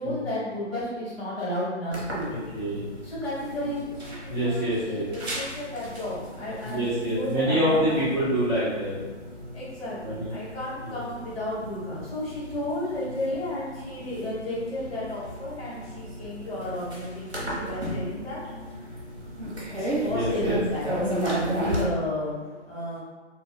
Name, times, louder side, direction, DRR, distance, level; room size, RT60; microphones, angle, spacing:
voice 1, 0.0-2.3 3.0-8.0 9.5-18.4 19.7-23.0, left 1 dB, 55° left, -8 dB, 1.5 m, -33 dB
sound 1, 1.9-21.8, right 1 dB, 60° right, 1.0 m, -35 dB
voice 2, 2.3-2.8 4.3-5.0 6.6-8.9 10.0-10.3 10.8-11.0 20.1-20.6, equal, ahead, -21 dB, 1.3 m, -26 dB
2.6 x 2.4 x 3.1 m, 1.3 s
figure-of-eight pair, 135°, 36 cm